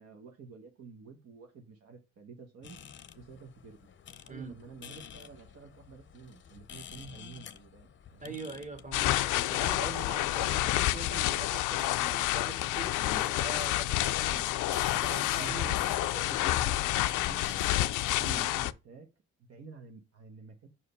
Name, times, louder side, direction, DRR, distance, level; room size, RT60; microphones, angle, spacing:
voice 1, 0.0-2.8 3.2-3.8 4.2-8.4 15.1-17.7 18.2-19.1 19.4-20.7, right 4 dB, 55° right, 1.2 m, -49 dB
sound 1, 2.6-18.6, left 8 dB, 40° left, 0.7 m, -47 dB
voice 2, 8.2-15.7 18.2-18.5, right 3 dB, 25° right, 1.7 m, -43 dB
sound 2, 8.9-18.7, left 16 dB, 85° left, 0.4 m, -29 dB
5.6 x 4.9 x 5.5 m
cardioid pair, 90°, 30 cm